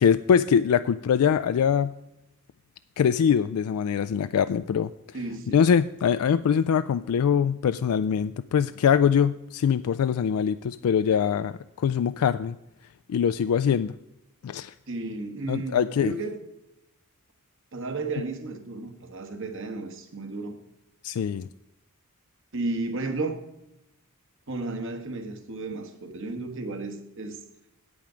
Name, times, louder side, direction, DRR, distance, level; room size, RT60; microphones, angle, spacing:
voice 1, 0.0-1.9 3.0-4.9 5.5-12.6 13.1-13.9 14.4-14.7 15.5-16.1 21.0-21.5, left 7 dB, 75° left, 12 dB, 0.3 m, -23 dB
voice 2, 5.1-5.7 14.9-16.4 17.7-20.6 22.5-23.4 24.5-27.4, right 3 dB, 60° right, 5 dB, 1.3 m, -33 dB
9.0 x 8.7 x 5.0 m, 0.91 s
head